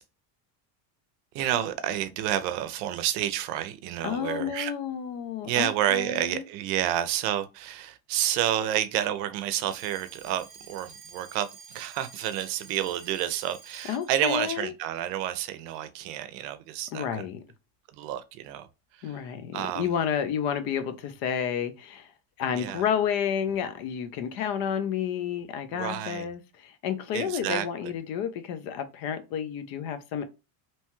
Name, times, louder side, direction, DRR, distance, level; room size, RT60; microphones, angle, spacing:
voice 1, 1.3-4.7 5.4-17.2 18.0-18.7 19.0-19.2 19.5-19.9 22.5-22.8 25.7-26.3 27.1-27.9, right 12 dB, 85° right, 0.6 m, -30 dB
voice 2, 4.0-6.4 13.9-14.7 16.9-17.4 19.0-22.1 22.4-30.2, left 8 dB, 50° left, 0.5 m, -30 dB
Alarm, 9.6-14.2, right 5 dB, 15° right, 0.8 m, -49 dB
2.9 x 2.2 x 2.9 m
cardioid pair, 160°, 47 cm